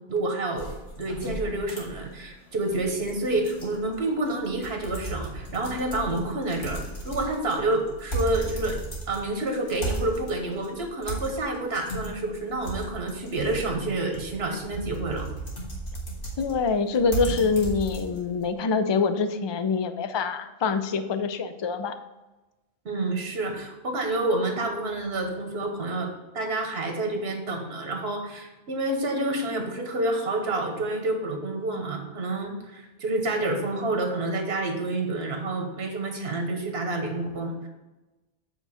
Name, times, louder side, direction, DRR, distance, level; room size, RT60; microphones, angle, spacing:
voice 1, 0.1-0.7 1.0-8.8 9.1-15.3 22.8-37.7, right 2 dB, 80° right, 3 dB, 1.4 m, -28 dB
sound 1, 0.6-18.5, right 2 dB, 60° left, 1.9 m, -36 dB
voice 2, 16.4-22.0, left 4 dB, 40° left, 10 dB, 0.4 m, -25 dB
8.1 x 3.8 x 6.3 m, 1.1 s
omnidirectional pair, 1.0 m